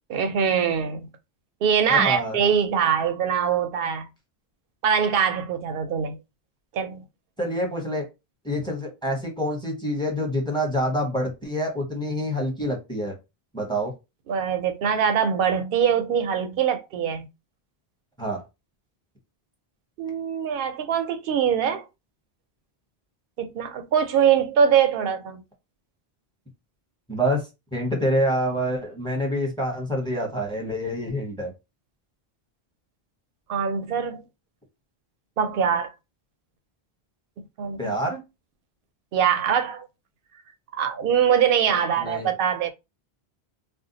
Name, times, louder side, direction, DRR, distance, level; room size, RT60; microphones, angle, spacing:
voice 1, 0.1-1.1 1.6-4.1 4.8-6.2 6.7-7.0 14.3-17.3 20.0-21.9 23.4-25.4 33.5-34.2 35.4-35.9 37.6-37.9 39.1-39.9 40.7-42.7, right 7 dB, 65° right, 0.7 m, -23 dB
voice 2, 1.9-2.4 7.4-8.0 8.4-13.1 13.5-13.9 18.2-18.4 27.1-27.4 27.7-31.5 37.8-38.2 42.0-42.3, equal, 5° left, 0.8 m, -26 dB
2.6 x 2.2 x 3.8 m
omnidirectional pair, 1.1 m